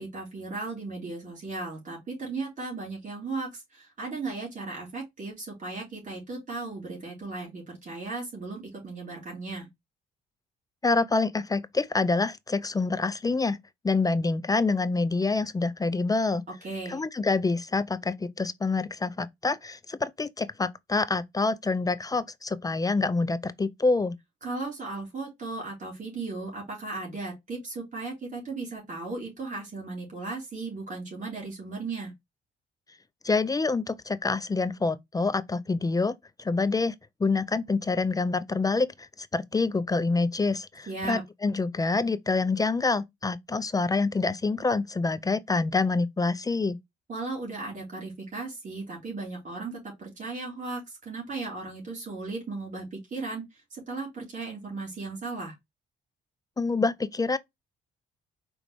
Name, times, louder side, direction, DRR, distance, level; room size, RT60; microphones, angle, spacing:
voice 1, 0.0-9.7 16.6-17.0 24.4-32.1 40.9-41.2 47.1-53.4 53.7-55.5, right 3 dB, 40° right, 3.5 m, -36 dB
voice 2, 10.8-13.6 13.8-16.4 16.9-24.2 33.2-36.2 36.4-36.9 37.2-39.1 39.3-46.8 56.6-57.4, left 3 dB, 20° left, 0.4 m, -26 dB
5.0 x 3.1 x 3.3 m
cardioid pair, 90°, 20 cm